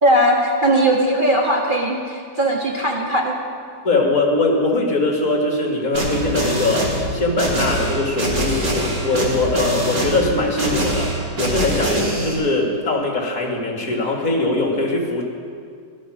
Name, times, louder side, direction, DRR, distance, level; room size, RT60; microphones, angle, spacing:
voice 1, 0.0-3.3, right 1 dB, 30° right, -2 dB, 1.5 m, -18 dB
voice 2, 3.8-15.2, left 2 dB, 50° left, 0 dB, 2.4 m, -21 dB
sound 1, 5.9-12.3, right 1 dB, 80° right, 3.6 m, -23 dB
16.0 x 12.5 x 6.4 m, 2.2 s
omnidirectional pair, 1.9 m